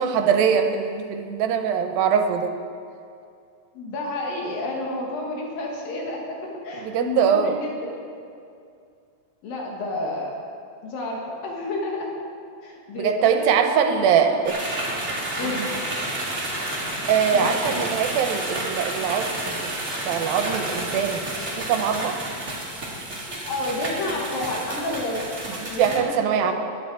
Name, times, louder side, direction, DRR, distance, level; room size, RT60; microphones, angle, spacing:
voice 1, 0.0-2.5 6.7-7.6 12.9-14.6 15.4-15.7 17.1-19.8 20.1-21.3 21.6-22.2 25.5-26.5, right 7 dB, 80° right, 6 dB, 2.7 m, -22 dB
voice 2, 3.8-6.4 6.6-8.0 9.4-10.3 10.8-12.1 12.6-14.5 15.4-15.6 17.3-17.9 23.3-25.2 25.7-26.1 26.4-26.5, left 2 dB, 75° left, -1 dB, 3.4 m, -30 dB
sound 1, 14.4-26.0, right 1 dB, 20° right, 2.4 m, -30 dB
21.0 x 9.4 x 4.7 m, 2.4 s
omnidirectional pair, 4.2 m